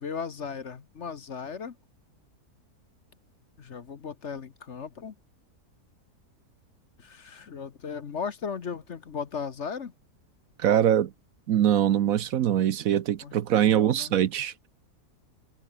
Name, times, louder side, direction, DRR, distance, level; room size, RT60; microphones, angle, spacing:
voice 1, 0.0-1.8 3.6-5.1 7.0-9.9 13.2-14.1, left 6 dB, 50° left, 1.4 m, -36 dB
voice 2, 10.6-11.1 11.5-14.5, right 10 dB, 65° right, 1.2 m, -23 dB
omnidirectional pair, 1.6 m